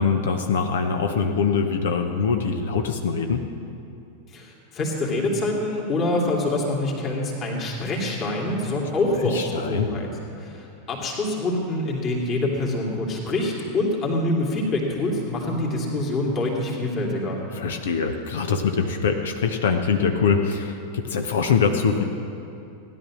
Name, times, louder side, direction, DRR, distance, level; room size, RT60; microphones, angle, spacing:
voice 1, 0.0-3.4 9.3-9.9 17.5-22.0, left 5 dB, 60° left, 6 dB, 0.9 m, -23 dB
voice 2, 4.3-10.1 10.4-17.4, left 2 dB, 30° left, -2 dB, 2.7 m, -25 dB
16.5 x 11.0 x 6.2 m, 2.7 s
figure-of-eight pair, 90°, 0 cm